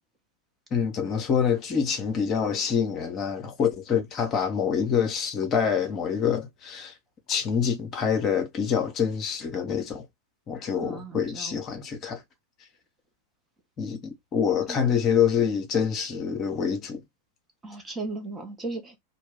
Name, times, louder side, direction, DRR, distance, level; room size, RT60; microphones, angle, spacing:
voice 1, 0.7-6.9 7.3-10.0 10.5-12.2 13.8-17.0, left 7 dB, 30° left, 0.7 m, -26 dB
voice 2, 10.8-11.6 14.7-14.8 17.6-19.0, right 3 dB, 10° right, 0.7 m, -36 dB
2.2 x 2.0 x 3.4 m
figure-of-eight pair, 90°, 0 cm